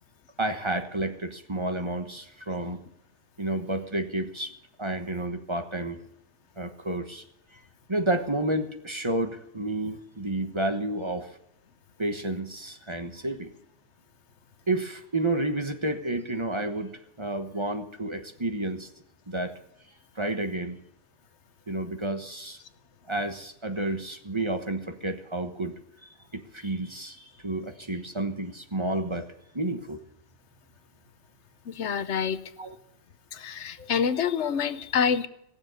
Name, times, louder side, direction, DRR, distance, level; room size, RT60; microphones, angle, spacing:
voice 1, 0.4-2.8 3.4-4.5 4.8-6.0 6.6-7.2 7.9-11.4 12.0-13.5 14.7-18.9 19.3-19.5 20.1-20.8 21.7-22.6 23.1-25.7 26.0-29.3 29.5-30.0 32.6-32.7 33.8-33.9, right 1 dB, 25° right, 6 dB, 1.2 m, -30 dB
voice 2, 31.7-32.4 33.3-35.3, left 7 dB, 80° left, 13 dB, 1.1 m, -27 dB
18.0 x 7.2 x 9.3 m, 0.78 s
omnidirectional pair, 1.2 m